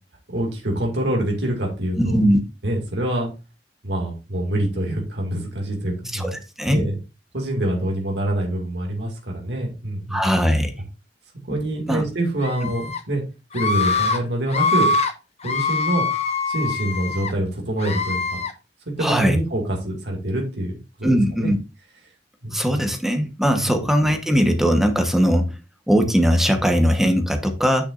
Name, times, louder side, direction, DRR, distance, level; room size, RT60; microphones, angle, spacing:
voice 1, 0.3-2.2 2.6-3.3 3.8-6.3 6.7-7.0 7.3-10.2 11.5-13.2 13.5-14.9 15.4-16.1 16.5-18.4 18.9-21.5 22.4-22.8 23.5-23.7, right 1 dB, 75° right, 0 dB, 2.2 m, -25 dB
voice 2, 2.0-2.4 6.1-6.8 10.1-10.7 11.9-12.0 19.0-19.4 21.0-21.6 22.5-25.5 25.9-27.9, equal, ahead, 5 dB, 1.0 m, -19 dB
Screaming, 12.4-13.0 13.5-14.2 14.5-15.1 15.4-17.3 17.8-18.5, left 3 dB, 40° left, 1.1 m, -23 dB
9.2 x 6.7 x 2.5 m, 0.29 s
head